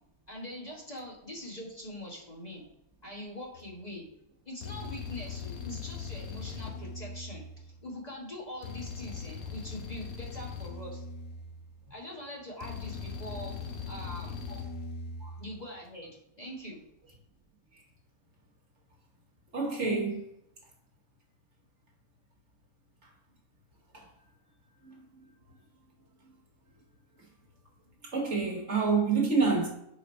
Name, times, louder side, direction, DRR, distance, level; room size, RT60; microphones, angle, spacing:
voice 1, 0.3-2.6 3.0-4.1 4.4-11.0 11.9-13.6 13.9-14.4 15.4-16.8, left 1 dB, 30° left, 1.4 m, -43 dB
sound 1, 3.5-3.8 4.6-7.9 8.6-11.9 12.6-15.6, left 5 dB, 50° left, 1.1 m, -40 dB
voice 2, 19.5-20.2 23.0-23.1 23.9-24.1 24.8-25.2 27.2-27.3 28.0-29.7, right 4 dB, 50° right, 1.7 m, -28 dB
5.2 x 5.0 x 4.3 m
omnidirectional pair, 1.5 m